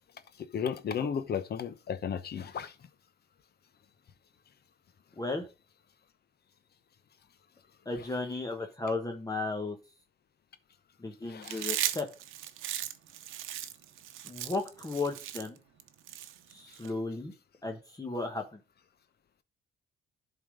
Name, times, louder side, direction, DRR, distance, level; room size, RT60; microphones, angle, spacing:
voice 1, 0.5-2.7 11.3-11.7, left 7 dB, 55° left, 0.9 m, -34 dB
voice 2, 5.2-5.5 7.8-9.8 11.0-12.0 14.2-15.6 16.5-17.3 17.6-18.6, left 3 dB, 20° left, 1.2 m, -35 dB
Chewing mastication, 11.4-16.9, right 12 dB, 85° right, 0.8 m, -37 dB
11.0 x 3.8 x 5.0 m
cardioid pair, 90°, 20 cm